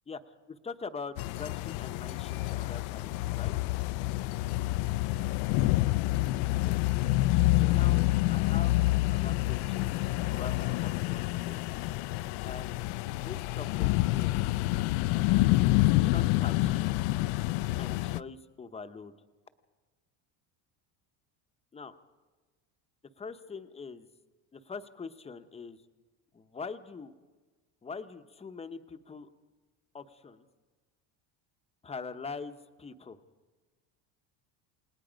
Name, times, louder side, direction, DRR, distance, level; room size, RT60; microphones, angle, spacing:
voice 1, 0.1-3.5 6.6-6.9 7.6-8.8 9.1-10.0 10.3-11.2 11.5-11.6 12.5-12.8 13.1-14.4 15.6-16.9 17.8-19.1 21.7-21.9 23.2-24.1 24.5-25.8 26.3-27.1 27.8-29.3 29.9-30.5 31.8-33.2, left 4 dB, 15° left, 9 dB, 0.8 m, -43 dB
sound 1, 1.2-18.2, left 18 dB, 80° left, 0.6 m, -28 dB
28.5 x 19.0 x 5.1 m, 1.3 s
cardioid pair, 155°, 47 cm